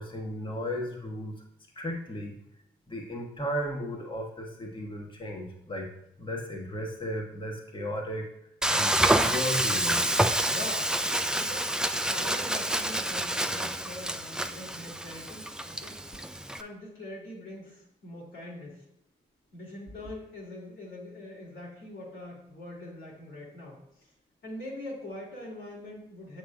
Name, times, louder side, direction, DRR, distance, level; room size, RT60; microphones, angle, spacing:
voice 1, 0.0-1.3 1.8-2.3 2.9-5.9 6.2-8.3 8.7-10.0, equal, 25° left, -1 dB, 1.3 m, -35 dB
Frying (food), 8.6-16.6, right 1 dB, 5° right, 0.4 m, -28 dB
voice 2, 10.4-11.0 11.4-16.0 16.6-18.8 19.5-24.1 24.4-26.4, left 1 dB, 75° left, -5 dB, 2.4 m, -43 dB
7.2 x 6.5 x 2.4 m, 0.80 s
supercardioid pair, 40°, 20 cm